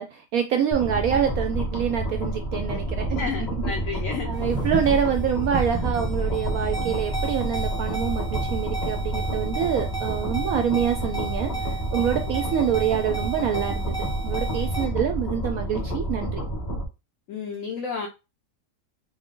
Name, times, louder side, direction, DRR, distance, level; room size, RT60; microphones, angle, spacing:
voice 1, 0.0-3.5 4.3-13.9 14.2-16.4, right 8 dB, 70° right, 0.8 m, -26 dB
sound 1, 0.7-16.8, right 1 dB, 30° left, 1.2 m, -29 dB
voice 2, 3.2-4.3 17.3-18.1, left 5 dB, 60° left, 1.0 m, -31 dB
sound 2, 4.3-14.9, right 4 dB, 5° left, 0.9 m, -34 dB
4.6 x 2.1 x 3.7 m
omnidirectional pair, 1.9 m